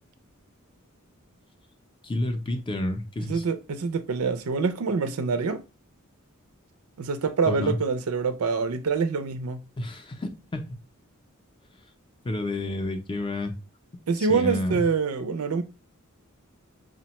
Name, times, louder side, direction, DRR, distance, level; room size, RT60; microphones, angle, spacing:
voice 1, 2.0-3.4 7.4-7.8 9.8-10.8 12.2-13.5 14.2-14.8, left 1 dB, 25° left, 0.5 m, -30 dB
voice 2, 3.2-5.6 7.0-9.6 14.1-15.6, right 5 dB, 80° right, 0.5 m, -26 dB
4.9 x 2.2 x 2.9 m
head